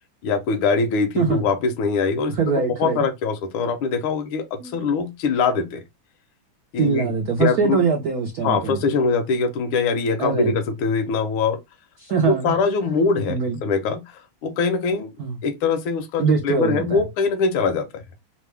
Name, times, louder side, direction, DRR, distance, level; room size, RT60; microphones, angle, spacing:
voice 1, 0.2-2.3 2.8-5.8 6.7-7.1 7.4-7.8 8.4-11.6 12.2-15.1 15.4-18.0, left 4 dB, 75° left, 1.5 m, -23 dB
voice 2, 1.2-1.5 2.3-3.0 4.6-4.9 6.8-8.8 10.2-10.5 12.0-12.6 13.3-13.6 15.2-15.4 16.2-17.0, right 5 dB, 80° right, 0.8 m, -23 dB
3.6 x 2.1 x 3.2 m
omnidirectional pair, 2.4 m